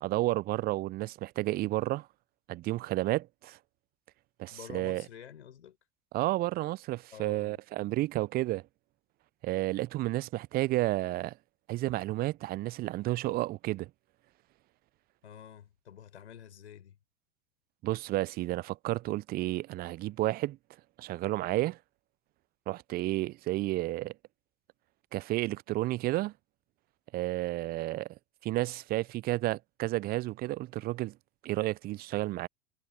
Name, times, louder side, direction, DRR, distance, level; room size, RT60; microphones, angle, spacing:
voice 1, 0.0-2.1 2.5-3.6 4.4-5.1 6.1-8.6 9.4-11.3 11.7-13.9 17.8-20.6 21.0-21.8 22.7-24.1 25.1-26.3 27.1-28.1 28.4-31.1 31.4-32.5, right 17 dB, 30° right, 0.4 m, -31 dB
voice 2, 4.5-5.8 7.1-8.0 15.2-17.0, left 9 dB, 80° left, 4.2 m, -49 dB
hypercardioid pair, 80°, 32 cm